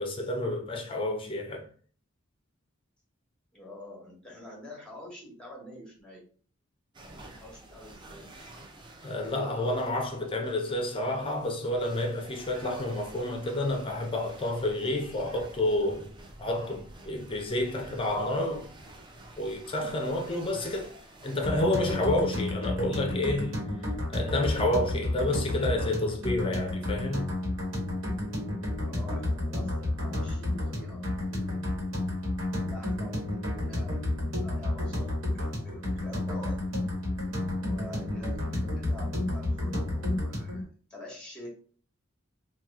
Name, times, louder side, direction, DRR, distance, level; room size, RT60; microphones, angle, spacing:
voice 1, 0.0-1.7 9.0-16.1 16.4-18.7 19.4-20.9 21.2-23.5 24.1-27.3, left 1 dB, 25° left, 0.5 m, -29 dB
voice 2, 3.5-6.3 7.0-8.4 19.8-20.2 28.8-31.8 32.5-36.6 37.6-41.5, left 1 dB, 5° left, 1.1 m, -47 dB
sound 1, 6.9-22.3, right 1 dB, 25° right, 0.5 m, -49 dB
sound 2, 21.4-40.6, left 1 dB, 80° right, 1.2 m, -31 dB
2.9 x 2.3 x 3.5 m
head